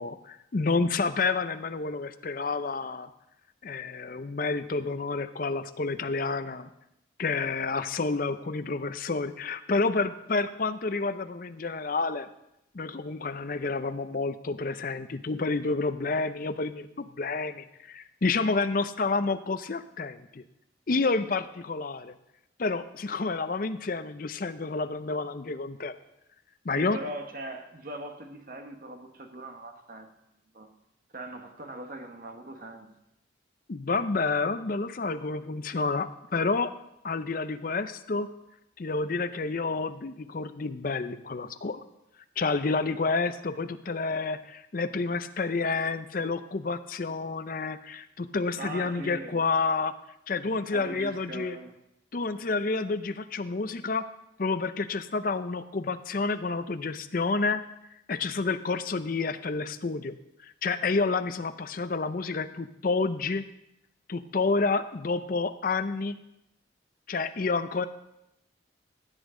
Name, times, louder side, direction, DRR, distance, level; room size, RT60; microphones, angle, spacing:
voice 1, 0.0-3.1 3.6-6.7 7.2-12.3 12.7-20.4 20.9-22.1 22.6-25.9 26.6-27.0 33.7-36.7 37.0-38.3 38.8-41.8 42.4-49.9 50.3-51.6 52.1-54.1 54.4-57.6 58.1-60.2 60.4-63.4 64.1-66.2 67.1-67.9, left 3 dB, 45° left, 11 dB, 0.5 m, -29 dB
voice 2, 26.7-30.1 30.5-30.7 31.1-32.9 48.5-49.4 50.7-51.7, right 1 dB, 45° right, 5 dB, 1.2 m, -40 dB
15.5 x 8.2 x 3.8 m, 0.84 s
head